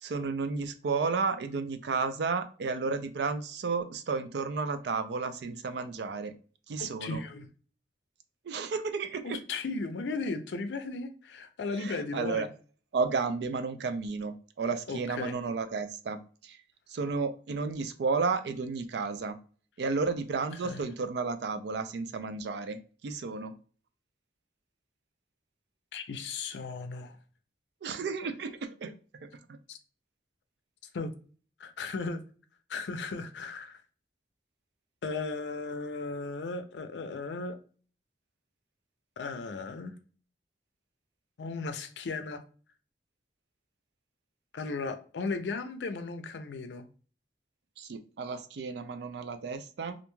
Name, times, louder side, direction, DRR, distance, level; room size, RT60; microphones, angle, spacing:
voice 1, 0.0-6.3 6.7-7.2 8.5-9.4 11.8-12.5 12.9-16.6 16.9-19.4 19.8-23.6 27.8-28.9 29.2-29.6 47.8-50.0, right 4 dB, 70° right, 0.4 m, -32 dB
voice 2, 6.8-7.5 9.2-12.5 14.9-15.4 20.6-20.8 25.9-27.2 29.7-29.8 30.9-31.1 31.6-32.2 32.7-33.8 35.0-37.6 39.2-39.9 41.4-42.4 44.5-46.9, left 3 dB, 80° left, 0.4 m, -36 dB
2.5 x 2.2 x 2.9 m
head